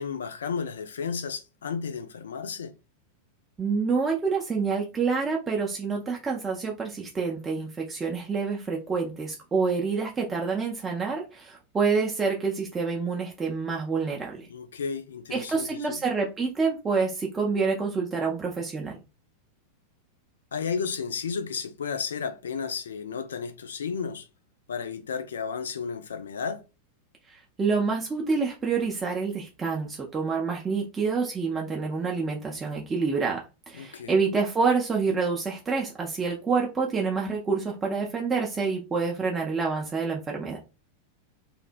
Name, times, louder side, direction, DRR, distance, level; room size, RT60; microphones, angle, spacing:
voice 1, 0.0-2.7 14.5-15.9 20.5-24.3 24.7-26.6 33.7-34.1, left 6 dB, 65° left, 0.3 m, -33 dB
voice 2, 3.6-14.5 15.3-19.0 27.3-40.6, right 4 dB, 20° right, 0.4 m, -27 dB
2.6 x 2.1 x 2.5 m
figure-of-eight pair, 90°, 0 cm